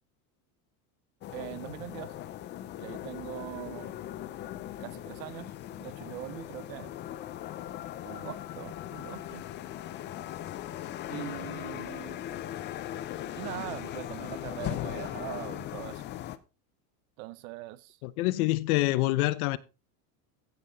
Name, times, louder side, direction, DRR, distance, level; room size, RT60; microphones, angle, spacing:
sound 1, 1.2-16.4, left 12 dB, 25° left, 0.5 m, -39 dB
voice 1, 1.3-2.1 2.8-4.0 4.8-5.5 5.8-6.9 8.0-9.4 11.1-12.2 13.4-16.0 17.2-18.0, right 17 dB, 65° right, 1.0 m, -42 dB
voice 2, 18.0-19.6, left 18 dB, 75° left, 0.9 m, -26 dB
15.5 x 5.7 x 4.0 m
cardioid pair, 170°, 44 cm